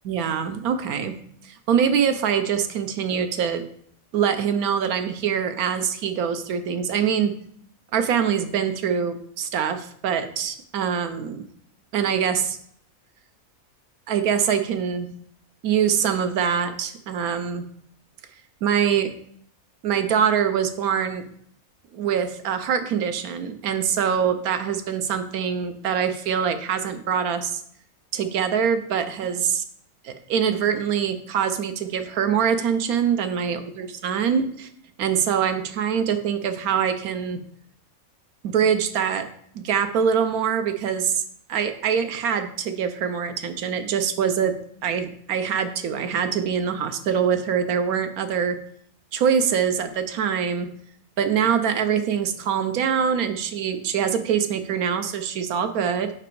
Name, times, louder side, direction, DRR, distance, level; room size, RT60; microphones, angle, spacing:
voice 1, 0.0-1.2 1.4-3.6 4.1-7.3 7.9-11.5 11.9-12.6 14.1-15.1 15.6-17.6 18.6-19.1 19.8-21.2 21.9-27.6 28.1-29.6 30.0-34.7 35.0-37.4 38.4-39.3 39.5-41.2 41.5-44.5 44.8-48.6 49.1-50.7 51.2-56.1, right 7 dB, 85° right, 9 dB, 1.2 m, -24 dB
6.0 x 5.1 x 4.6 m, 0.65 s
omnidirectional pair, 1.5 m